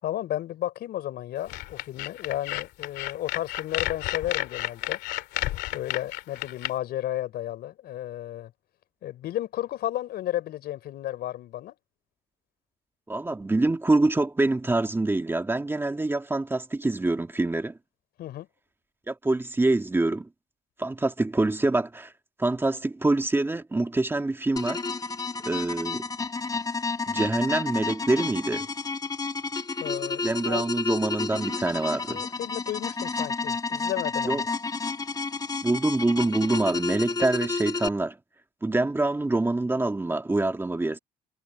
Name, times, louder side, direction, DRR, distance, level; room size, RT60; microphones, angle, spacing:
voice 1, 0.0-5.0 5.7-8.5 9.0-11.7 18.2-18.5 29.8-30.6 32.1-34.4, left 13 dB, 70° left, 4.7 m, -33 dB
sound 1, 1.5-6.7, left 16 dB, 85° left, 2.3 m, -31 dB
voice 2, 13.1-17.8 19.1-20.3 20.8-22.1 22.4-24.8 25.4-26.0 27.1-28.7 30.2-32.2 34.2-34.4 35.6-38.2 38.6-41.0, right 2 dB, 15° right, 2.1 m, -25 dB
sound 2, 24.6-37.9, left 4 dB, 20° left, 1.5 m, -31 dB
cardioid pair, 110°, 17 cm